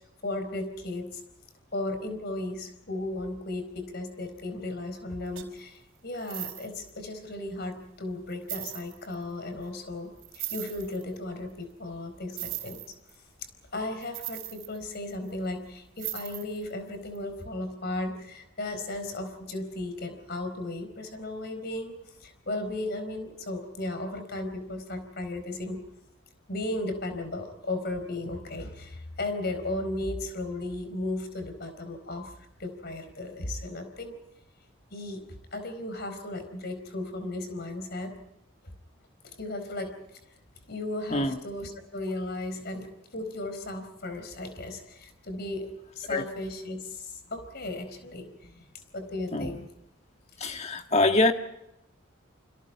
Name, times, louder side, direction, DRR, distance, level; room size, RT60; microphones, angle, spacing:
voice 1, 0.2-1.2 1.7-12.8 13.7-25.8 26.5-32.3 32.6-34.2 34.9-35.2 35.5-38.1 39.2-39.9 40.7-42.9 43.1-45.7 45.9-48.5 48.9-49.7, left 2 dB, 50° left, 8 dB, 4.3 m, -35 dB
sound 1, 5.3-5.6 6.1-6.9 7.7-7.8 8.3-9.1 10.2-11.0 12.3-13.1 14.0-15.3 16.0-16.7 17.1-17.2, right 16 dB, 70° right, 4.3 m, -38 dB
voice 2, 50.4-51.3, left 2 dB, 30° left, 6 dB, 1.6 m, -24 dB
29.0 x 26.0 x 4.7 m, 0.83 s
head